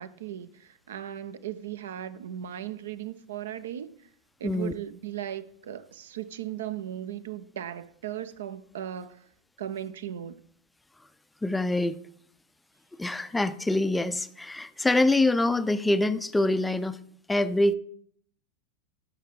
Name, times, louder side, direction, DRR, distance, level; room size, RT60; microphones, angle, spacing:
voice 1, 0.0-3.9 4.4-9.3 9.6-10.4, right 10 dB, 65° right, 0.4 m, -37 dB
voice 2, 4.4-4.7 11.4-12.0 13.0-17.0 17.3-17.7, left 2 dB, 5° left, 0.4 m, -25 dB
12.5 x 4.9 x 3.0 m
figure-of-eight pair, 90°, 0 cm